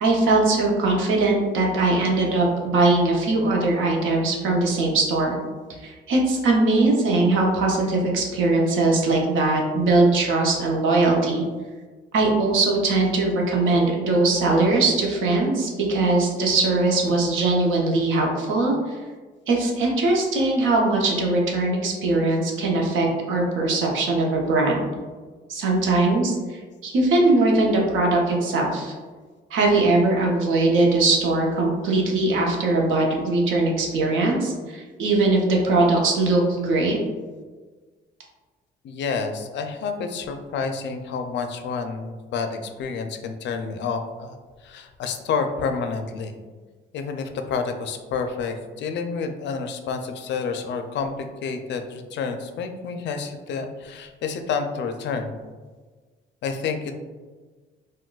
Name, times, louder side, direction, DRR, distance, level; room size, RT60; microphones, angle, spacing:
voice 1, 0.0-5.4 5.8-11.4 12.1-19.0 19.5-24.8 25.5-28.9 29.5-37.0, right 2 dB, 80° right, -1 dB, 0.7 m, -21 dB
voice 2, 38.8-44.4 44.6-46.4 46.9-55.3 56.4-56.9, left 5 dB, 65° left, 6 dB, 0.4 m, -29 dB
3.7 x 2.1 x 2.3 m, 1.4 s
cardioid pair, 90°, 20 cm